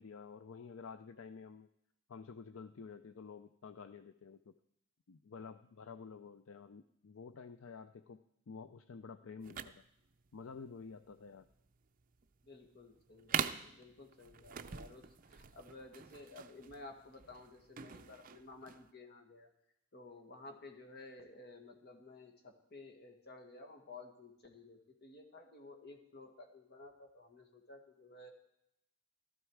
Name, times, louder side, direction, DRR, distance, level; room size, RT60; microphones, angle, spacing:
voice 1, 0.0-1.7 2.1-4.5 5.1-9.8 10.3-11.5, left 5 dB, 70° left, 11 dB, 0.5 m, -50 dB
sound 1, 9.4-18.9, right 8 dB, 40° right, 0.6 m, -43 dB
voice 2, 12.4-19.5 19.9-28.3, left 2 dB, 50° left, 4 dB, 1.8 m, -54 dB
15.5 x 13.0 x 4.7 m, 0.79 s
head